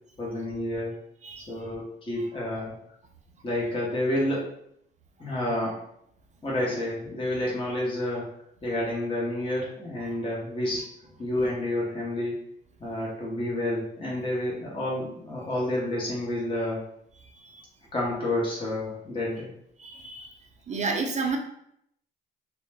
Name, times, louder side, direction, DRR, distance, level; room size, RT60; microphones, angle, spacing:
voice 1, 0.2-1.0 1.4-2.7 3.4-4.5 5.2-5.8 6.4-8.3 8.6-10.9 11.2-12.5 12.8-16.9 17.9-19.5, left 1 dB, 25° left, -5 dB, 0.8 m, -29 dB
voice 2, 17.3-17.6 19.8-20.3 20.7-21.4, right 4 dB, 35° right, 2 dB, 0.5 m, -31 dB
2.2 x 2.1 x 3.3 m, 0.72 s
cardioid pair, 90°, 20 cm